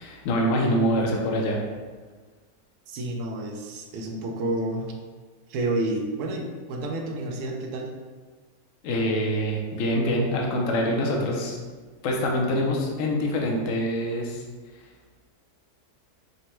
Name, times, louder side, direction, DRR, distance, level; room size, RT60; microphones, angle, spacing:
voice 1, 0.0-1.6 8.8-11.6 12.0-14.4, equal, 65° left, 0 dB, 0.8 m, -25 dB
voice 2, 2.9-4.9 5.5-7.9, right 2 dB, 70° right, 1 dB, 0.8 m, -30 dB
5.1 x 2.1 x 3.0 m, 1.4 s
omnidirectional pair, 1.6 m